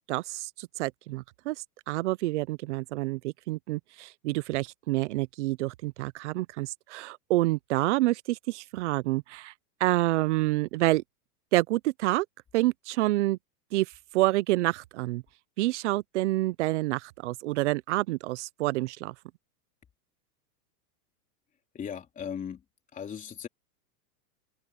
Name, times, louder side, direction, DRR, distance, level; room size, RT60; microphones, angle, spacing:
voice 1, 0.1-1.6 1.9-9.5 9.8-11.0 11.5-12.3 12.5-13.4 13.7-13.9 14.1-15.2 15.6-19.1, right 18 dB, 50° right, 0.5 m, -28 dB
voice 2, 21.7-22.6 22.9-23.5, left 8 dB, 15° left, 3.7 m, -37 dB
open air
supercardioid pair, 165°, 48 cm